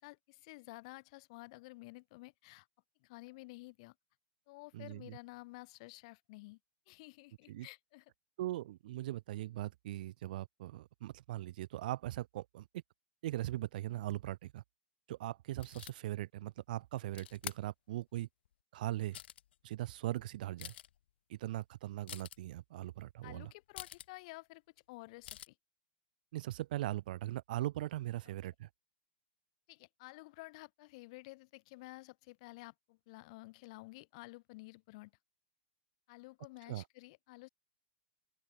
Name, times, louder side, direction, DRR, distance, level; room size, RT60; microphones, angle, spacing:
voice 1, 0.0-2.7 3.0-3.9 4.5-6.6 6.9-8.0 23.2-24.6 24.9-25.5 28.2-28.3 29.7-35.1 36.1-37.5, left 23 dB, 35° left, 0.4 m, -52 dB
voice 2, 4.7-5.2 7.5-7.7 8.4-12.7 13.2-14.6 15.1-18.3 18.7-19.2 19.6-20.7 21.3-23.5 26.3-28.7 36.7-36.8, right 15 dB, 50° right, 0.7 m, -40 dB
sound 1, 15.6-15.9 17.1-17.6 18.5-18.6 19.0-19.5 20.1-20.2 20.4-21.0 22.1-22.4 23.7-24.1 25.2-25.5, left 12 dB, 65° left, 1.3 m, -47 dB
open air
supercardioid pair, 180°, 6 cm